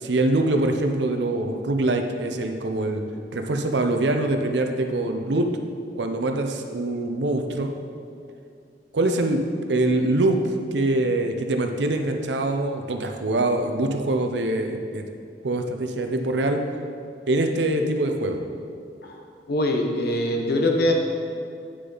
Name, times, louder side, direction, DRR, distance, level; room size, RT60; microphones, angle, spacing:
voice 1, 0.0-3.0 3.3-5.5 5.9-7.7 8.9-9.4 9.7-10.4 10.7-15.0 15.4-16.6 17.3-18.4, right 2 dB, 75° right, 5 dB, 0.7 m, -24 dB
voice 2, 19.5-20.9, left 1 dB, 60° left, 2 dB, 1.1 m, -22 dB
9.2 x 6.7 x 4.0 m, 2.4 s
head